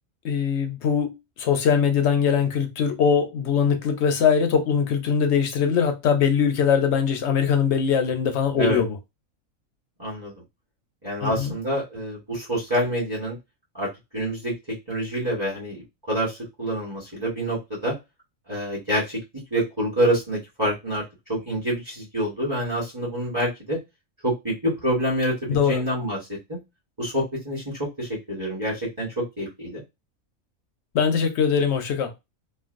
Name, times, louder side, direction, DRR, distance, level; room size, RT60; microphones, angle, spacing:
voice 1, 0.2-8.9 11.2-11.5 25.5-25.8 30.9-32.1, left 7 dB, 60° left, 0.8 m, -22 dB
voice 2, 10.0-10.3 11.0-13.4 13.8-17.9 18.5-19.2 19.5-21.0 21.3-23.8 24.2-26.6 27.0-29.8, right 1 dB, 20° right, 1.2 m, -27 dB
3.1 x 2.3 x 2.4 m
omnidirectional pair, 1.4 m